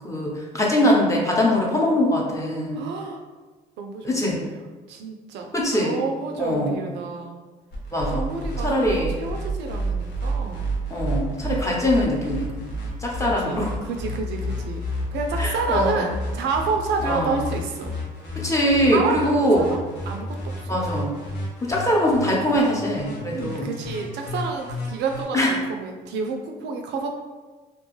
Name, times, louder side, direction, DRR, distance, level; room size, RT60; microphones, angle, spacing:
voice 1, 0.0-2.9 4.0-4.4 5.5-6.0 6.4-6.7 7.9-8.3 8.6-9.2 10.9-12.7 13.0-13.7 15.4-16.1 17.0-17.4 18.3-19.7 20.7-21.2 21.6-23.7 25.3-25.5, left 1 dB, 15° left, -3 dB, 0.8 m, -22 dB
voice 2, 2.7-3.2 3.8-7.4 8.1-10.7 13.2-14.8 15.1-18.0 18.9-19.8 20.0-20.8 23.3-27.1, right 4 dB, 70° right, 3 dB, 0.4 m, -30 dB
sound 1, 7.7-25.2, equal, 70° left, 0.9 m, -31 dB
2.5 x 2.2 x 3.1 m, 1.3 s
supercardioid pair, 60°, 19 cm